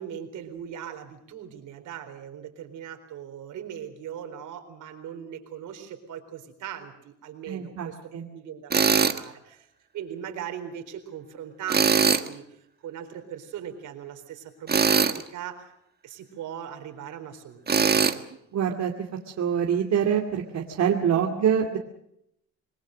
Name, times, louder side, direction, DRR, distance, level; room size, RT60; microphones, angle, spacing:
voice 1, 0.0-8.0 8.3-9.7 9.9-12.4 12.8-15.7 16.0-18.2 21.1-21.3, right 9 dB, 85° right, 6 dB, 4.2 m, -39 dB
voice 2, 7.5-8.3 18.5-18.9 19.3-21.8, right 8 dB, 65° right, 1 dB, 2.4 m, -25 dB
Tools, 8.7-9.2 11.7-12.3 14.7-15.2 17.7-18.2, right 5 dB, 30° right, 1.6 m, -21 dB
27.0 x 21.0 x 6.5 m, 0.76 s
cardioid pair, 90°, 30 cm